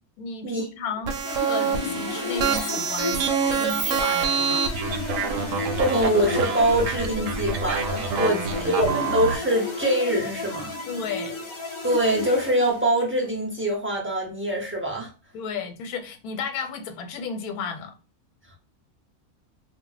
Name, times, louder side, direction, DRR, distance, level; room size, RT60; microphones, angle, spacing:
voice 1, 0.2-1.1 1.5-4.7 8.1-8.9 10.9-11.3 15.3-18.0, left 5 dB, 85° left, 1.1 m, -33 dB
sound 1, 1.1-9.4, right 6 dB, 70° right, 0.9 m, -26 dB
sound 2, 1.2-13.1, left 3 dB, 45° left, 0.4 m, -33 dB
voice 2, 5.8-10.7 11.8-15.1, right 1 dB, 15° right, 0.5 m, -24 dB
2.3 x 2.1 x 3.8 m
omnidirectional pair, 1.5 m